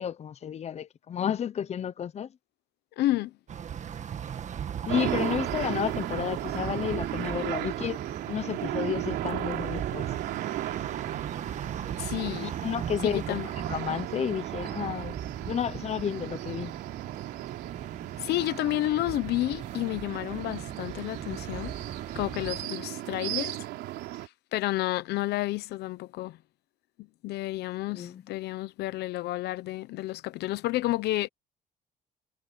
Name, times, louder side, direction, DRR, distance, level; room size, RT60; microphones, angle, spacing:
voice 1, 0.0-2.3 4.9-8.0 8.3-10.1 12.4-15.2 15.4-16.7 27.9-28.2, left 8 dB, 40° left, 0.9 m, -31 dB
voice 2, 3.0-3.3 12.0-12.5 13.0-13.5 18.2-21.7 22.1-23.6 24.5-26.4 27.2-31.3, left 16 dB, 75° left, 0.8 m, -30 dB
sound 1, 3.5-22.6, right 8 dB, 45° right, 1.8 m, -39 dB
sound 2, 4.9-24.3, right 16 dB, 85° right, 3.4 m, -36 dB
cardioid pair, 110°, 17 cm